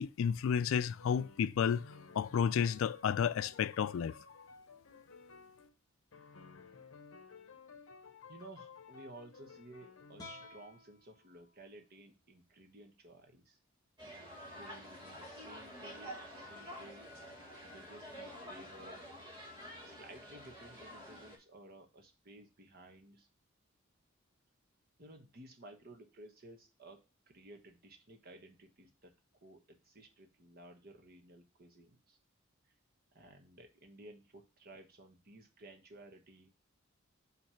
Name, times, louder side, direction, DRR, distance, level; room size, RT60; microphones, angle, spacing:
voice 1, 0.0-1.8 2.2-4.2, left 7 dB, 70° left, 0.3 m, -31 dB
sound 1, 1.0-5.7 6.1-10.5, left 5 dB, 85° left, 0.8 m, -55 dB
voice 2, 8.3-13.6 14.5-17.1 17.6-19.0 19.8-23.3 25.0-29.1 29.4-32.2 33.1-36.5, right 1 dB, 50° right, 1.2 m, -55 dB
sound 2, 10.2-13.4, left 2 dB, 20° left, 1.2 m, -56 dB
sound 3, 14.0-21.4, equal, 25° right, 1.9 m, -49 dB
5.9 x 3.2 x 5.6 m
head